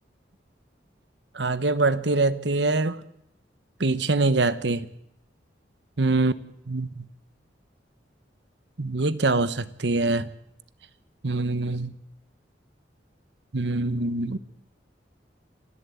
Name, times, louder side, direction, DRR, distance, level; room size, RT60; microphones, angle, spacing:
voice 1, 1.3-3.0 3.8-4.9 6.0-6.3 6.7-7.1 8.8-10.3 11.2-11.9 13.5-14.4, right 3 dB, 70° right, 1.1 m, -24 dB
26.5 x 15.5 x 8.3 m
head